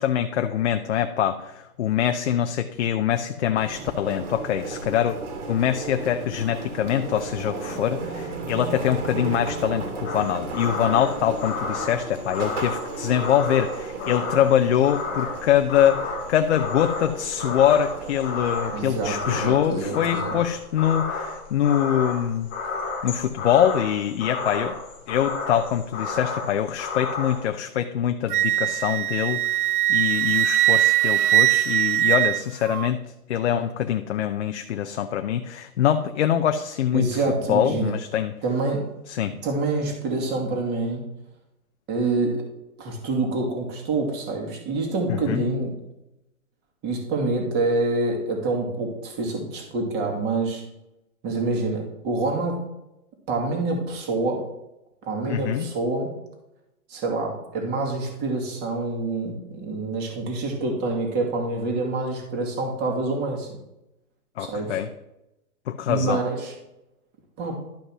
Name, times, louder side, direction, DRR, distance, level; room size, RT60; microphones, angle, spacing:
voice 1, 0.0-5.2 5.5-22.5 23.0-24.8 25.1-33.0 33.3-37.1 37.5-38.3 39.1-39.3 45.1-45.4 55.3-55.7 64.4-64.9 65.7-66.2, left 10 dB, 50° left, 7 dB, 0.7 m, -24 dB
sound 1, 3.6-19.6, right 4 dB, 50° right, 2.7 m, -35 dB
sound 2, 10.0-27.4, left 4 dB, 10° left, 0.4 m, -32 dB
voice 2, 18.7-20.3 36.9-37.9 38.4-38.9 39.4-41.1 41.9-42.4 42.8-45.7 46.8-50.6 51.2-52.6 53.3-54.4 55.0-56.1 56.9-63.5 64.4-64.8 65.9-66.5 67.4-67.6, right 3 dB, 20° right, 1 dB, 2.3 m, -26 dB
Wind instrument woodwind instrument, 28.3-32.9, right 13 dB, 75° right, 0.5 m, -21 dB
12.0 x 5.4 x 6.0 m, 0.90 s
hypercardioid pair, 150°, 46 cm